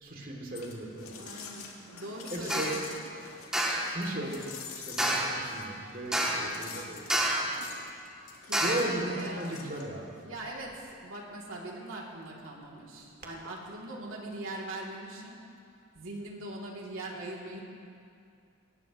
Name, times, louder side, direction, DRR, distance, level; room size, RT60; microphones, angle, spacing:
voice 1, 0.0-1.1 2.3-2.8 3.9-4.5 4.9-7.0 8.6-10.0, right 1 dB, 40° right, -1 dB, 2.6 m, -36 dB
sound 1, 0.5-10.2, left 5 dB, 80° left, 2.0 m, -47 dB
voice 2, 1.2-2.8 6.2-6.7 8.4-9.6 10.2-15.4 15.9-17.6, right 1 dB, 65° right, -3 dB, 2.8 m, -41 dB
sound 2, 2.5-2.8 3.5-3.9 5.0-5.4 6.1-6.6 7.1-7.6 8.5-9.0, right 1 dB, 5° right, 1.5 m, -28 dB
21.5 x 18.5 x 3.1 m, 2.4 s
head